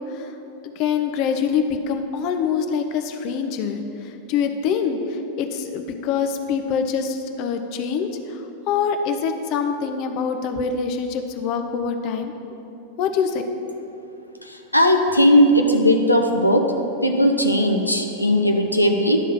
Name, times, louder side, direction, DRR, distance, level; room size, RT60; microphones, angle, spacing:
voice 1, 0.8-3.8 4.3-5.0 5.4-8.1 8.7-12.3 13.0-13.4, left 6 dB, 40° left, 6 dB, 0.5 m, -24 dB
voice 2, 14.7-16.7 17.0-19.2, equal, 85° left, 3 dB, 0.6 m, -17 dB
11.0 x 3.7 x 7.0 m, 2.9 s
figure-of-eight pair, 90°, 0 cm